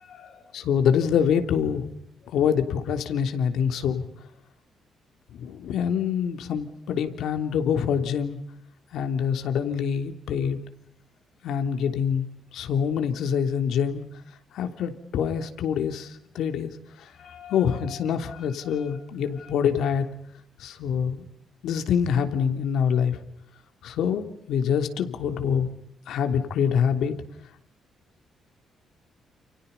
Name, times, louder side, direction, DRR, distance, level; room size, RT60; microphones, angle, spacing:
voice 1, 0.0-0.6 2.2-2.4 17.0-19.5, left 8 dB, 50° left, 4 dB, 7.8 m, -48 dB
voice 2, 0.5-1.9 2.3-4.0 5.3-8.4 8.9-10.6 11.4-12.3 12.5-14.0 14.5-16.1 16.3-16.7 17.5-20.0 20.6-21.2 21.6-23.2 23.8-25.7 26.1-27.1, left 7 dB, 75° left, 6 dB, 3.2 m, -25 dB
30.0 x 29.5 x 5.6 m, 0.73 s
cardioid pair, 160°, 0 cm